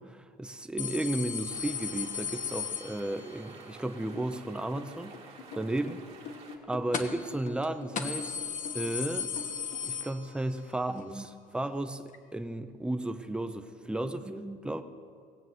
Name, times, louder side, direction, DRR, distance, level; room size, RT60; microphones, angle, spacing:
voice 1, 0.0-6.0 6.6-9.3 9.8-12.0 12.3-14.8, right 1 dB, 5° right, 8 dB, 0.7 m, -34 dB
sound 1, 0.8-3.5 6.9-7.3 7.6-7.7 8.0-10.7 11.0-11.1 12.1-12.2, left 7 dB, 50° left, 1.2 m, -36 dB
sound 2, 1.5-6.6, right 4 dB, 35° right, 2.0 m, -51 dB
sound 3, 4.8-10.0, left 5 dB, 80° left, 2.3 m, -45 dB
18.5 x 7.7 x 7.8 m, 2.2 s
cardioid pair, 110°, 17 cm